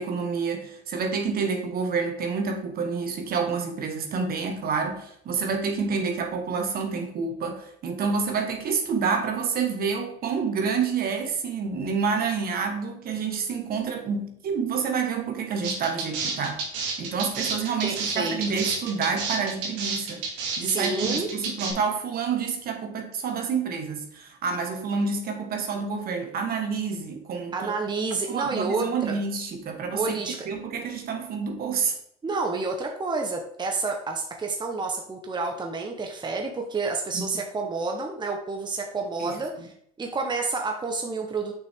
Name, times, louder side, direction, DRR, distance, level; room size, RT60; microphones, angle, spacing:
voice 1, 0.0-16.6 17.0-20.3 20.6-27.7 28.3-30.2 30.5-32.0 37.1-37.2 39.2-39.3, right 5 dB, 50° right, 4 dB, 1.6 m, -28 dB
sound 1, 15.6-21.7, right 4 dB, 75° right, 2.1 m, -30 dB
voice 2, 17.8-18.6 20.6-21.3 27.5-29.2 29.9-30.4 32.2-41.5, right 3 dB, 25° right, 2 dB, 1.2 m, -29 dB
6.2 x 6.2 x 3.7 m, 0.68 s
supercardioid pair, 85°, 19 cm